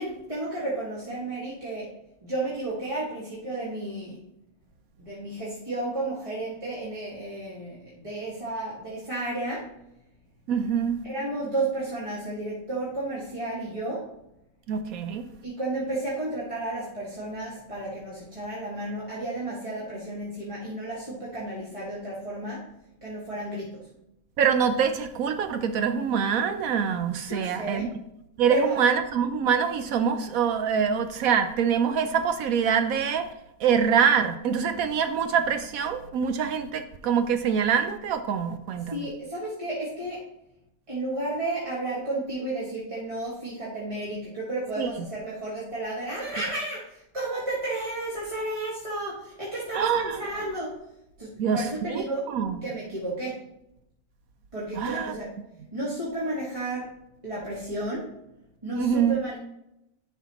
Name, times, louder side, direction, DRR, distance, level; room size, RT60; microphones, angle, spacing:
voice 1, 0.0-1.9 2.2-4.2 5.0-9.7 11.0-14.1 15.4-22.6 23.0-23.9 27.3-27.9 28.5-28.8 38.9-40.2 40.9-50.8 51.2-52.2 52.6-53.4 54.5-55.3 55.7-57.0 57.2-58.1 58.6-59.4, right 2 dB, 20° right, -8 dB, 1.7 m, -32 dB
voice 2, 10.5-11.0 14.7-15.3 24.4-27.9 28.4-33.3 33.6-39.1 44.8-44.9 49.7-50.3 51.4-51.6 51.9-52.6 54.8-55.1 58.7-59.2, right 7 dB, 75° right, 8 dB, 1.1 m, -25 dB
11.0 x 5.9 x 3.0 m, 0.84 s
omnidirectional pair, 1.5 m